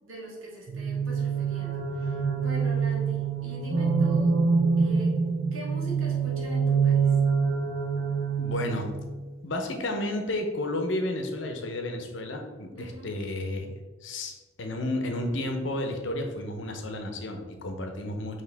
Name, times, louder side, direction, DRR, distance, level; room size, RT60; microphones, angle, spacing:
voice 1, 0.0-4.3 4.8-5.2 5.5-7.1 12.8-13.1, equal, 85° right, -4 dB, 1.4 m, -42 dB
sound 1, 0.7-9.1, right 5 dB, 50° right, 0.5 m, -25 dB
voice 2, 8.4-8.9 9.4-13.7 14.0-18.4, left 1 dB, 65° left, 4 dB, 0.7 m, -32 dB
4.8 x 3.0 x 3.4 m, 1.3 s
head